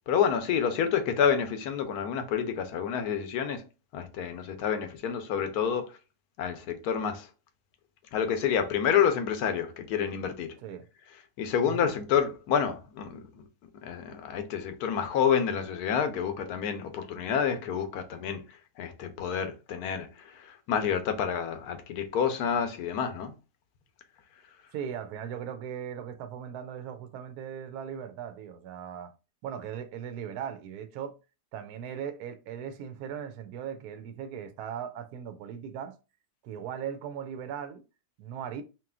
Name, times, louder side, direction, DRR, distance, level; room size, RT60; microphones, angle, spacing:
voice 1, 0.1-3.6 3.9-5.9 6.4-7.3 8.1-10.5 11.4-13.4 13.8-18.4 18.8-23.3, left 7 dB, 75° left, 1.2 m, -28 dB
voice 2, 24.7-29.1 29.4-31.1 31.5-35.9 36.4-37.8 38.2-38.6, right 8 dB, 75° right, 1.1 m, -38 dB
4.8 x 3.0 x 2.3 m
omnidirectional pair, 1.7 m